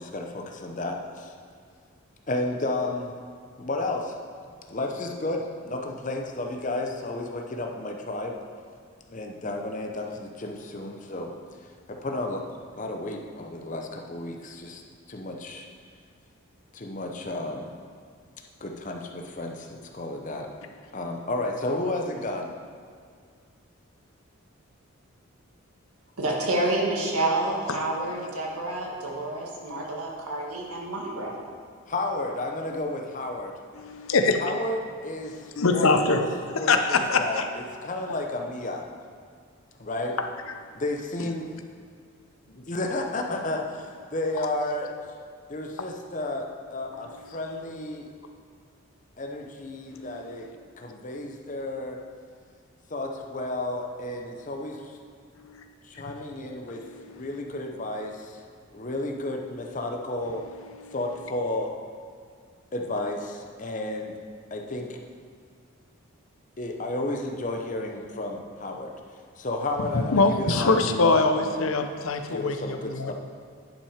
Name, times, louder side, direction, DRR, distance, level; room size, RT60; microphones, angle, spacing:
voice 1, 0.0-1.3 2.3-3.1 3.6-4.1 4.7-8.3 9.1-11.3 11.9-12.5 12.7-14.8 15.1-15.7 16.7-17.7 18.6-20.5 20.9-22.5 31.9-33.5 34.4-38.8 39.8-40.2 40.7-41.5 42.5-44.9 45.5-48.1 49.2-50.5 50.8-52.0 52.9-55.0 55.8-58.4 58.7-60.4 60.9-61.7 62.7-64.2 64.5-65.0 66.6-68.9 69.4-71.6 72.3-73.1, left 2 dB, 35° left, 2 dB, 0.7 m, -32 dB
voice 2, 26.2-31.3, right 2 dB, 90° right, -2 dB, 1.8 m, -28 dB
voice 3, 33.8-34.5 35.3-36.2 36.7-37.5 49.9-50.1 55.4-55.6 56.7-57.3 60.8-60.9 69.9-73.1, left 3 dB, 70° left, 6 dB, 0.7 m, -24 dB
10.5 x 5.7 x 5.0 m, 2.2 s
head